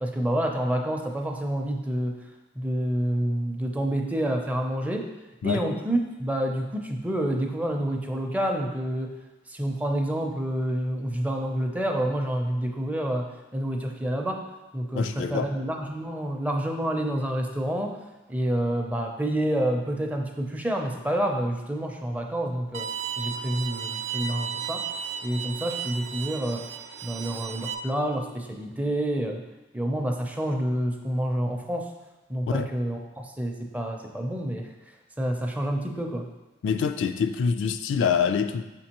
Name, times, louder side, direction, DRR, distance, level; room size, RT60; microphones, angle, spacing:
voice 1, 0.0-2.2 2.6-5.1 5.4-9.1 9.5-14.5 14.7-18.0 18.3-22.9 23.2-24.9 25.2-26.7 27.0-29.4 29.7-31.9 32.3-34.7 35.2-36.3, right 1 dB, 10° right, 3 dB, 0.5 m, -28 dB
voice 2, 14.9-15.5 32.5-32.7 36.6-38.6, left 6 dB, 65° left, 9 dB, 0.3 m, -25 dB
Bowed string instrument, 22.7-27.7, right 7 dB, 65° right, 0.4 m, -34 dB
6.5 x 5.2 x 2.9 m, 1.0 s
head